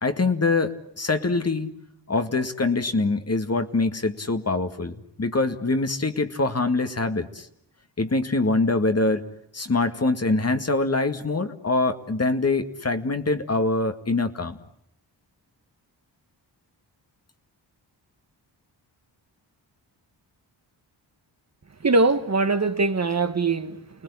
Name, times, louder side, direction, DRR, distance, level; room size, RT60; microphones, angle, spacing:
voice 1, 0.0-1.8 2.1-7.5 8.0-9.2 9.5-14.6, left 3 dB, 35° left, 2.1 m, -24 dB
voice 2, 21.8-24.0, right 3 dB, 35° right, 1.5 m, -22 dB
29.5 x 19.5 x 9.9 m
cardioid pair, 65°, 44 cm